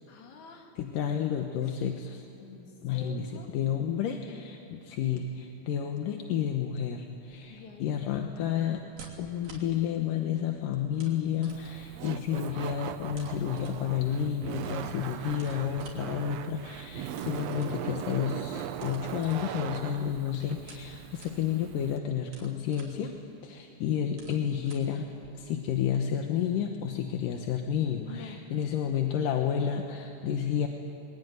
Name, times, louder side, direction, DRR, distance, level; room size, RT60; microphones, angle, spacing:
voice 1, 0.1-0.7 1.7-1.8 2.4-3.5 7.5-8.0 27.9-28.4, left 6 dB, 60° left, 3 dB, 3.5 m, -47 dB
voice 2, 0.8-2.3 2.8-3.3 3.5-8.8 9.2-23.1 23.4-25.1 25.3-30.7, left 9 dB, 80° left, 3 dB, 2.8 m, -31 dB
sound 1, 7.2-25.8, right 3 dB, 85° right, 4.9 m, -55 dB
Laughter, 11.5-22.0, right 9 dB, 70° right, 1.7 m, -39 dB
27.0 x 22.5 x 9.4 m, 2.8 s
omnidirectional pair, 3.9 m